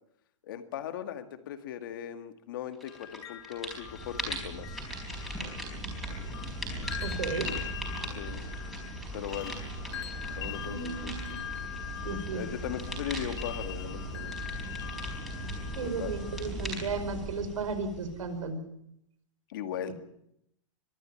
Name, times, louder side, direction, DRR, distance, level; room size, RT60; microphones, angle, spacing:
voice 1, 0.4-4.8 8.2-8.4 9.1-9.5 10.3-11.1 12.0-14.3 15.8-16.1 19.5-19.9, left 10 dB, 40° left, 9 dB, 2.0 m, -38 dB
sound 1, 2.8-3.2 3.4-18.5, right 1 dB, ahead, 4.3 m, -38 dB
sound 2, 2.9-16.5, left 11 dB, 55° left, 2.2 m, -43 dB
voice 2, 7.0-7.5 10.7-11.4 12.0-12.4 15.7-18.6, right 4 dB, 90° right, 10 dB, 5.2 m, -34 dB
23.0 x 14.0 x 9.9 m, 0.76 s
hypercardioid pair, 175°, 16 cm